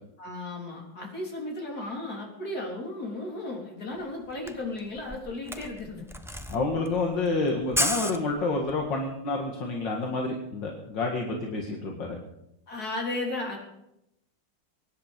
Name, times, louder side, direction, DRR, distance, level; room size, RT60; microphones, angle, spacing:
voice 1, 0.2-6.0 12.7-13.6, left 2 dB, 50° left, -1 dB, 4.2 m, -35 dB
Camera, 4.0-4.1 4.3-8.8, equal, 5° right, 0.5 m, -33 dB
voice 2, 6.5-12.2, left 3 dB, 70° left, 0 dB, 2.6 m, -29 dB
23.0 x 10.5 x 5.2 m, 0.83 s
omnidirectional pair, 2.0 m